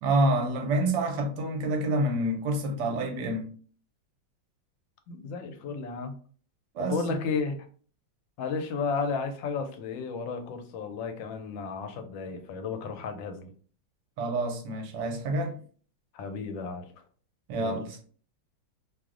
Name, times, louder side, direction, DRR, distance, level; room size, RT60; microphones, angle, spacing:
voice 1, 0.0-3.5 6.7-7.0 14.2-15.6 17.5-18.0, right 1 dB, 70° right, 1.2 m, -27 dB
voice 2, 5.1-6.1 6.8-7.6 8.4-13.5 16.1-16.9 17.6-17.8, left 5 dB, 90° left, 1.3 m, -33 dB
3.1 x 2.0 x 3.6 m
omnidirectional pair, 2.0 m